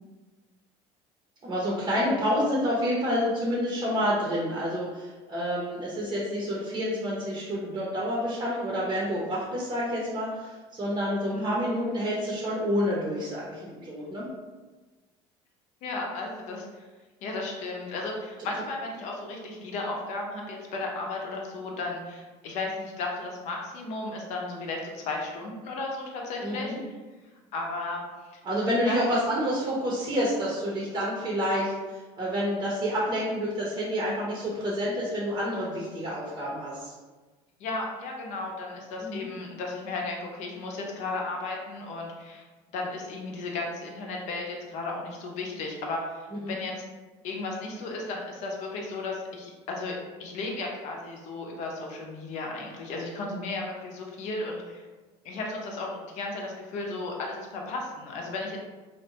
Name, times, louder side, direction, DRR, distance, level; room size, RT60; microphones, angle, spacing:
voice 1, 1.4-14.3 26.4-26.8 28.4-36.9 39.0-39.3 46.4-46.5, equal, 30° right, -5 dB, 0.6 m, -28 dB
voice 2, 11.3-11.6 15.8-16.8 17.2-26.9 27.5-28.4 28.8-29.0 37.6-42.4 42.7-46.7 47.2-54.8 55.2-58.6, left 3 dB, 65° left, 0 dB, 0.6 m, -34 dB
2.5 x 2.1 x 2.8 m, 1.3 s
cardioid pair, 110°, 13 cm